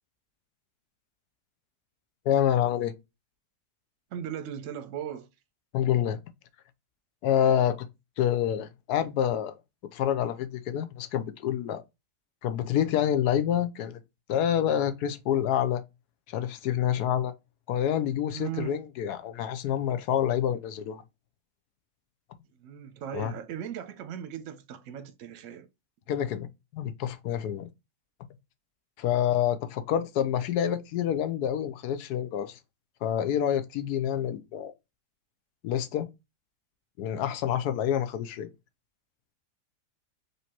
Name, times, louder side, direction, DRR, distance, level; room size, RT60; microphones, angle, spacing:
voice 1, 2.3-2.9 5.7-6.2 7.2-7.9 8.2-9.5 9.9-11.8 12.4-14.0 14.3-15.8 16.3-17.3 17.7-21.0 23.1-23.3 26.1-26.5 26.7-27.7 29.0-32.6 33.0-34.7 35.6-36.1 37.0-38.5, left 10 dB, 80° left, 1.1 m, -27 dB
voice 2, 4.1-5.3 18.3-18.8 22.5-25.7, right 9 dB, 60° right, 0.9 m, -38 dB
5.1 x 3.2 x 2.9 m
omnidirectional pair, 1.7 m